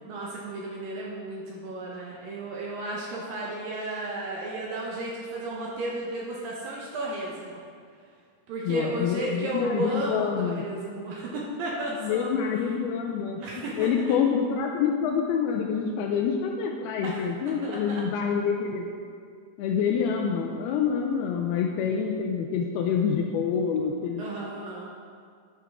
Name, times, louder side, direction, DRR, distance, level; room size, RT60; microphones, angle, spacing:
voice 1, 0.1-7.6 8.5-12.3 13.4-14.1 17.0-17.2 17.6-18.0 24.2-24.9, right 1 dB, 70° right, -4 dB, 2.3 m, -33 dB
voice 2, 8.7-10.6 12.0-13.4 13.8-18.9 19.6-24.2, left 7 dB, 85° left, 1 dB, 2.3 m, -27 dB
11.0 x 9.5 x 3.6 m, 2.1 s
omnidirectional pair, 5.1 m